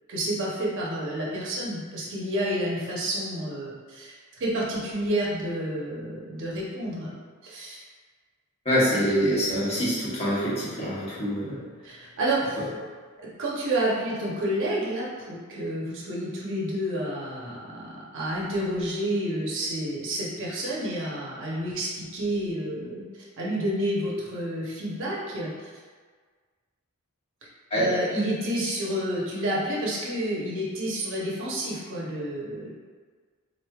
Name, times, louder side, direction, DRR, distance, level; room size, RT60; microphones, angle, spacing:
voice 1, 0.1-4.1 4.4-7.1 7.4-7.8 8.9-9.0 9.3-9.4 11.8-12.6 13.2-25.7 27.7-32.7, right 1 dB, 60° right, -5 dB, 0.8 m, -29 dB
voice 2, 8.6-11.6 27.7-27.9, equal, 25° left, -9 dB, 1.0 m, -25 dB
3.7 x 3.3 x 2.3 m, 1.6 s
head